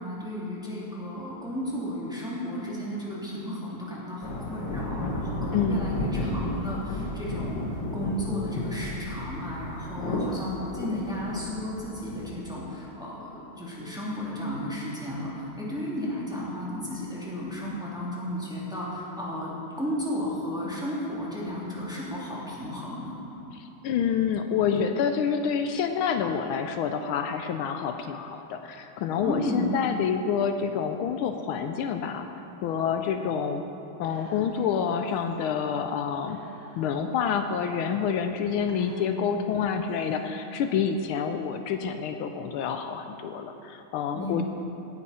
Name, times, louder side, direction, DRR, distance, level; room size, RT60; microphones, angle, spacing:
voice 1, 0.0-23.2 29.2-29.8 44.1-44.4, left 1 dB, ahead, -7 dB, 2.7 m, -33 dB
sound 1, 4.2-12.3, left 1 dB, 60° left, 1.9 m, -33 dB
voice 2, 5.5-6.0 23.6-32.3 32.6-33.6 34.0-36.4 36.8-44.4, left 7 dB, 80° left, 7 dB, 1.5 m, -28 dB
Whispering, 34.0-34.7 35.0-35.1 36.3-37.1 37.8-37.9 38.7-39.9, left 3 dB, 45° left, 1.7 m, -44 dB
17.0 x 10.5 x 4.3 m, 2.9 s
omnidirectional pair, 2.4 m